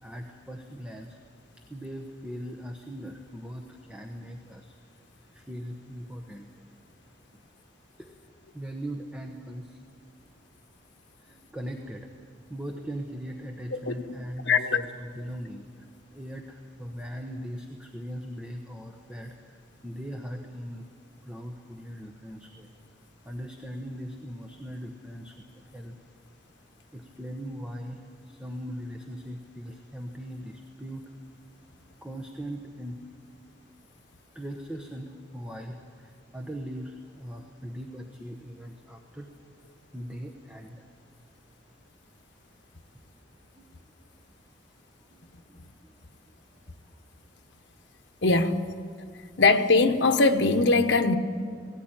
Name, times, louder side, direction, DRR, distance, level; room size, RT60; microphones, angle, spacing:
voice 1, 0.0-1.2 1.7-4.7 5.3-6.5 8.0-8.1 8.5-9.8 11.2-12.1 12.5-20.9 21.2-22.7 23.2-25.9 26.9-31.0 32.0-33.0 34.3-39.3 39.9-40.8 43.6-43.7 45.1-45.2 45.5-45.9, equal, 5° right, 2 dB, 1.1 m, -40 dB
voice 2, 14.5-14.8 48.2-48.7 49.4-51.2, left 3 dB, 75° left, 7 dB, 1.1 m, -21 dB
18.0 x 17.5 x 9.0 m, 2.1 s
head